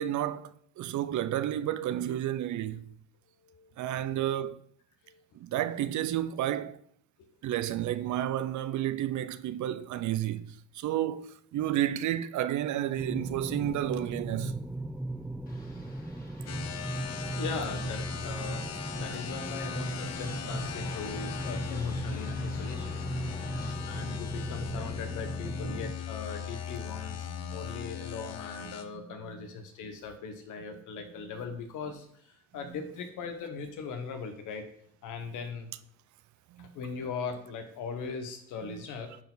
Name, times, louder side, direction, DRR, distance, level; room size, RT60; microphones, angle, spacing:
voice 1, 0.0-2.9 3.8-4.6 5.3-6.8 7.4-14.6 27.3-27.6 28.6-29.4 36.5-36.7, right 12 dB, 75° right, 0.6 m, -31 dB
sound 1, 13.0-25.9, right 1 dB, 5° right, 0.5 m, -37 dB
sound 2, 15.5-23.7, left 2 dB, 30° left, 2.3 m, -51 dB
sound 3, 16.5-28.8, left 9 dB, 55° left, 0.9 m, -39 dB
voice 2, 17.4-23.0 23.9-34.6 35.0-35.7 36.6-39.1, left 5 dB, 85° left, 1.4 m, -39 dB
10.5 x 4.7 x 4.0 m
cardioid pair, 90°, 30 cm